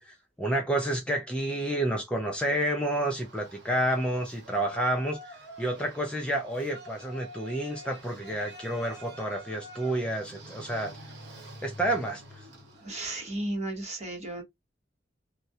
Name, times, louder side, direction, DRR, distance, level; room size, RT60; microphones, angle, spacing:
voice 1, 0.1-10.9 11.6-12.2, right 1 dB, 5° left, 0.4 m, -30 dB
Yell, 2.9-13.1, equal, 90° right, 1.0 m, -47 dB
voice 2, 12.7-14.4, right 1 dB, 35° right, 0.8 m, -34 dB
2.2 x 2.1 x 2.6 m
head